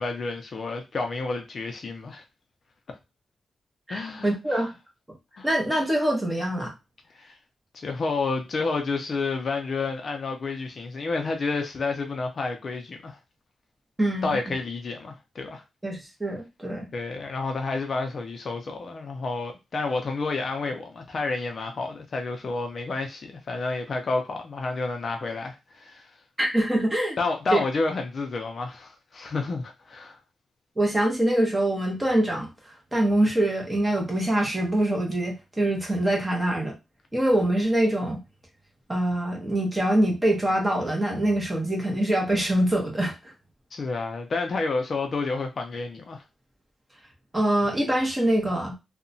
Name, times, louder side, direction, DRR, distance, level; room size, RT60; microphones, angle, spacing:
voice 1, 0.0-2.2 3.9-4.6 5.4-5.5 7.1-7.4 7.7-13.2 14.2-15.6 16.9-26.1 27.2-30.2 43.7-46.2, left 3 dB, 40° left, 0.4 m, -30 dB
voice 2, 3.9-4.7 5.4-6.7 14.0-14.4 15.8-16.9 26.4-27.2 27.5-27.6 30.8-36.8 37.1-38.2 38.9-43.1 47.3-48.8, right 1 dB, 10° right, 0.7 m, -24 dB
2.8 x 2.1 x 2.6 m
wide cardioid pair, 180°, 0 cm